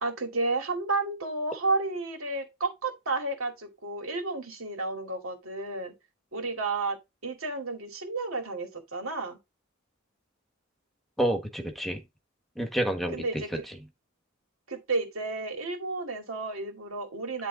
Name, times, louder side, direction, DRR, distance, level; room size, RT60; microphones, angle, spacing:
voice 1, 0.0-5.9 6.3-7.0 7.2-9.4 13.1-13.6 14.7-17.5, right 3 dB, 90° right, 2.5 m, -31 dB
voice 2, 11.2-12.0 12.6-13.7, right 1 dB, ahead, 1.4 m, -29 dB
11.0 x 3.6 x 3.9 m
head